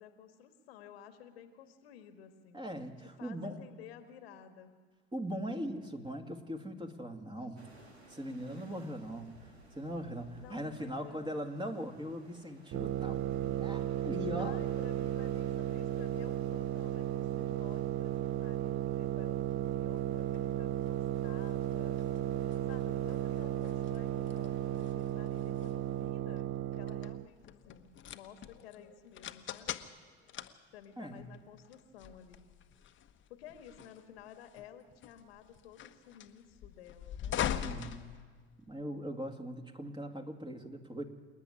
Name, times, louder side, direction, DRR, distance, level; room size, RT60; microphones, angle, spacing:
voice 1, 0.0-2.6 3.0-4.8 8.3-8.8 10.4-11.5 14.4-22.1 22.5-29.7 30.7-32.4 33.3-37.4, left 8 dB, 70° left, 8 dB, 1.6 m, -54 dB
voice 2, 2.5-3.6 5.1-7.6 8.1-9.3 9.8-14.6 31.0-31.3 37.5-38.1 38.7-41.0, equal, 15° right, 4 dB, 2.2 m, -40 dB
sound 1, 7.6-26.1, right 1 dB, 90° right, 1.8 m, -58 dB
sound 2, 12.7-27.3, right 12 dB, 40° right, 0.7 m, -34 dB
sound 3, 19.4-38.8, left 10 dB, 40° left, 1.2 m, -44 dB
27.0 x 9.7 x 9.9 m, 1.5 s
figure-of-eight pair, 65°, 31 cm